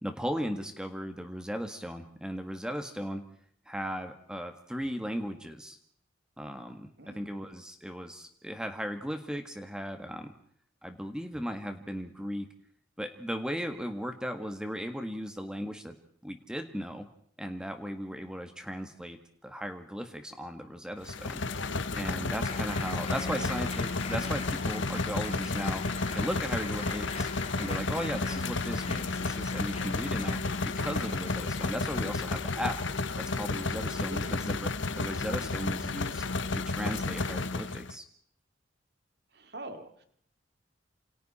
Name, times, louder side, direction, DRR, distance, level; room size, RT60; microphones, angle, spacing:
voice 1, 0.0-3.2 3.7-5.8 6.4-10.3 10.8-12.5 13.0-16.0 16.2-17.1 17.4-19.2 19.4-21.4 22.0-25.8 26.1-27.3 27.6-30.4 30.8-32.8 33.2-34.7 35.0-36.2 36.5-38.0, equal, 5° right, 6 dB, 1.9 m, -36 dB
voice 2, 7.0-7.3 23.3-23.5 33.6-33.8 34.1-34.4 39.3-40.0, right 2 dB, 60° right, 7 dB, 2.7 m, -44 dB
sound 1, 21.0-37.9, left 3 dB, 85° left, 1.2 m, -32 dB
Applause, 22.4-33.7, left 5 dB, 35° left, 2.5 m, -44 dB
28.5 x 28.5 x 4.4 m, 0.62 s
head